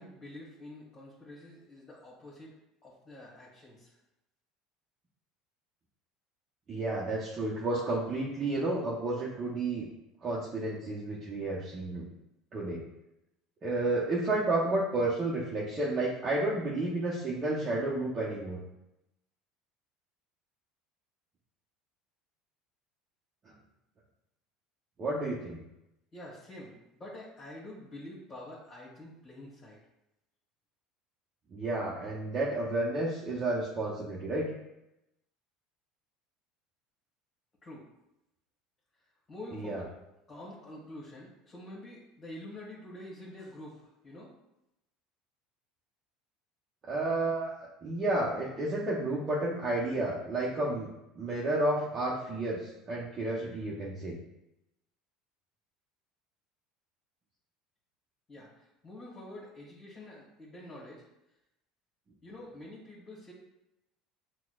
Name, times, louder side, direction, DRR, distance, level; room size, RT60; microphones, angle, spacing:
voice 1, 0.0-2.6 2.8-4.0 26.1-29.8 37.6-37.8 39.3-39.9 40.3-44.3 58.3-61.0 62.2-63.3, left 1 dB, 35° left, -7 dB, 1.4 m, -47 dB
voice 2, 6.7-9.9 10.2-12.1 12.5-12.8 13.6-18.6 25.0-25.6 31.5-34.5 39.5-39.8 46.9-47.6 47.8-50.9 51.2-54.2, right 2 dB, 40° right, -6 dB, 0.8 m, -31 dB
5.8 x 2.2 x 2.4 m, 0.89 s
hypercardioid pair, 80°, 0 cm